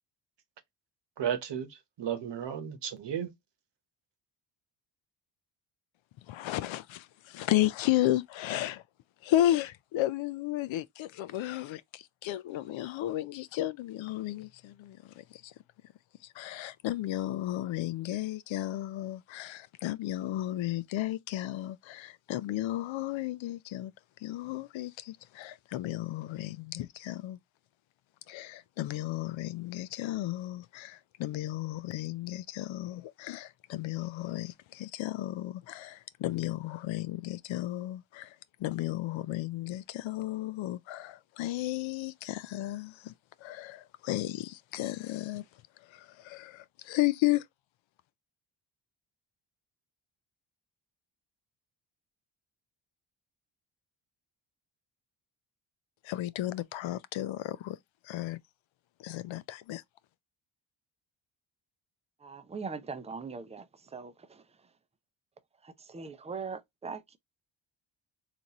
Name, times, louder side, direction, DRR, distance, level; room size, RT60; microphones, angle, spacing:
voice 1, 1.2-3.3, right 9 dB, 60° right, 1.0 m, -34 dB
voice 2, 6.3-8.8 9.2-15.5 16.2-23.9 24.2-27.4 28.3-43.1 43.4-45.4 45.8-47.4 56.0-57.8 58.0-58.4 59.0-59.8, left 14 dB, 75° left, 0.5 m, -33 dB
voice 3, 62.2-63.7 63.9-64.4 65.6-67.2, right 5 dB, 15° right, 0.5 m, -40 dB
4.0 x 2.6 x 2.9 m
cardioid pair, 85°, 48 cm